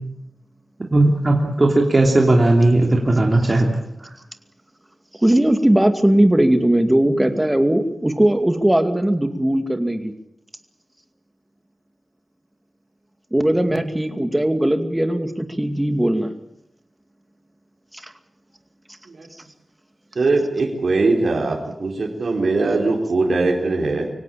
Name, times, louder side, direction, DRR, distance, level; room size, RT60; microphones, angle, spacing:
voice 1, 0.9-3.7 4.0-4.1 13.7-13.8, right 2 dB, 30° right, 0 dB, 3.1 m, -17 dB
voice 2, 5.2-10.1 13.3-16.4 17.9-18.1, right 1 dB, 10° right, 7 dB, 2.3 m, -19 dB
voice 3, 20.2-24.1, right 3 dB, 65° right, 1 dB, 3.9 m, -21 dB
24.5 x 17.0 x 8.6 m, 0.79 s
wide cardioid pair, 90°, 0 cm